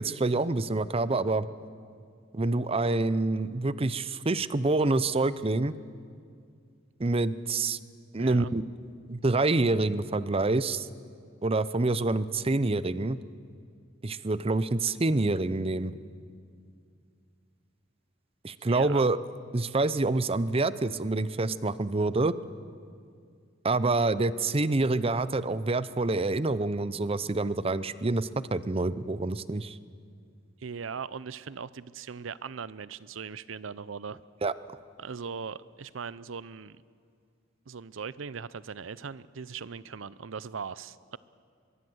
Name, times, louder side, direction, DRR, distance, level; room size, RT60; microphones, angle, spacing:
voice 1, 0.0-1.5 2.3-5.7 7.0-7.8 8.1-8.6 9.1-10.9 11.4-13.2 14.0-15.9 18.4-19.2 19.5-22.3 23.6-29.8 34.4-34.5, right 2 dB, 30° right, 15 dB, 0.7 m, -27 dB
voice 2, 8.2-8.5 18.7-19.1 30.6-34.2 35.0-36.8 37.7-41.2, right 6 dB, 90° right, 18 dB, 0.6 m, -39 dB
23.0 x 22.5 x 7.9 m, 2.2 s
head